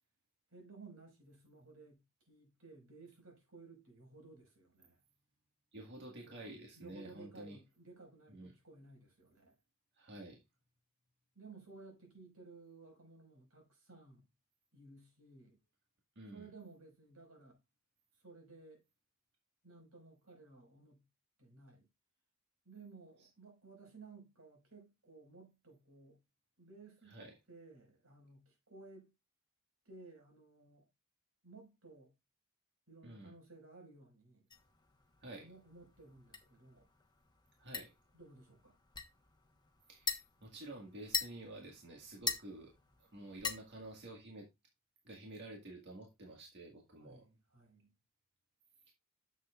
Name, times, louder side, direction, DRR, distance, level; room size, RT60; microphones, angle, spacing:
voice 1, 0.5-5.0 6.3-6.4 6.8-9.6 11.4-14.3 14.7-15.6 16.3-17.6 18.1-18.8 19.6-21.0 21.4-21.9 22.7-26.2 26.6-27.2 27.5-29.1 29.9-30.9 31.4-32.1 32.9-34.5 35.4-36.9 38.1-38.8 47.0-47.9, right 3 dB, 90° right, 5.1 m, -57 dB
voice 2, 5.7-7.6 8.3-8.5 9.9-10.4 16.2-16.5 23.2-23.3 27.0-27.3 33.0-33.3 35.2-35.5 37.6-37.9 39.9-42.7 43.1-44.5 45.0-47.2, right 1 dB, 55° right, 1.7 m, -50 dB
sound 1, 34.5-44.2, left 5 dB, 20° left, 1.2 m, -44 dB
10.0 x 7.4 x 2.4 m
head